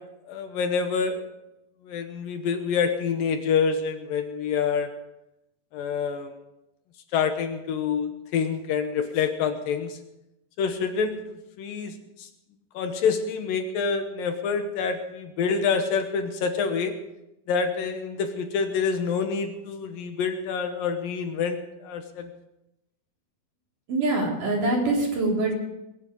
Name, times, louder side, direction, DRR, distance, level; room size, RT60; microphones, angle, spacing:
voice 1, 0.3-1.2 1.9-4.9 5.7-6.3 7.1-10.0 10.6-11.2 11.6-11.9 12.2-12.3 12.7-16.9 17.5-22.3, left 6 dB, 70° left, 7 dB, 2.7 m, -27 dB
voice 2, 23.9-25.6, right 2 dB, 55° right, -2 dB, 5.0 m, -24 dB
23.0 x 9.8 x 5.2 m, 0.90 s
omnidirectional pair, 4.4 m